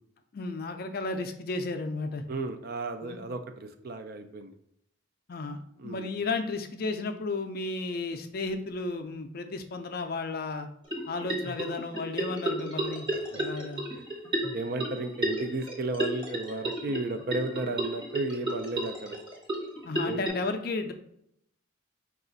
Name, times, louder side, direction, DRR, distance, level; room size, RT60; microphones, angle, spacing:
voice 1, 0.3-2.2 3.0-3.2 5.3-10.7 11.1-13.1 13.4-13.9 19.8-20.9, left 3 dB, 50° left, 6 dB, 0.4 m, -33 dB
voice 2, 2.3-4.5 5.8-6.1 13.3-13.4 14.5-19.2 20.0-20.2, right 2 dB, 50° right, 7 dB, 0.4 m, -34 dB
sound 1, 10.9-20.3, right 1 dB, 25° right, 1.0 m, -33 dB
5.0 x 2.4 x 3.9 m, 0.74 s
head